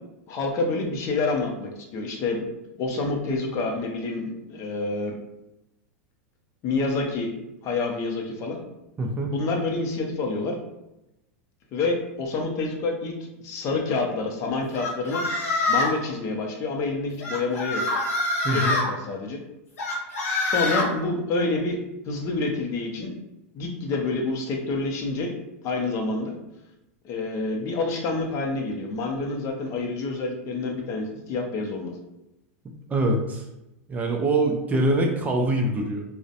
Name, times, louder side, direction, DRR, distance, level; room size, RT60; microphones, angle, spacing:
voice 1, 0.3-2.5 2.8-5.1 6.6-7.3 7.6-8.6 9.3-10.6 11.7-15.2 15.7-17.8 18.4-19.4 20.4-21.8 22.1-23.1 23.5-25.3 25.6-26.4 27.0-31.9, left 3 dB, 40° left, 2 dB, 0.5 m, -28 dB
voice 2, 9.0-9.3 18.4-18.8 32.9-33.4 33.9-36.0, right 1 dB, 20° right, 1 dB, 0.3 m, -24 dB
sound 1, 14.7-16.0 17.2-18.9 19.8-20.9, left 2 dB, 90° left, 0.7 m, -25 dB
2.4 x 2.0 x 2.7 m, 0.91 s
hypercardioid pair, 115°, 8 cm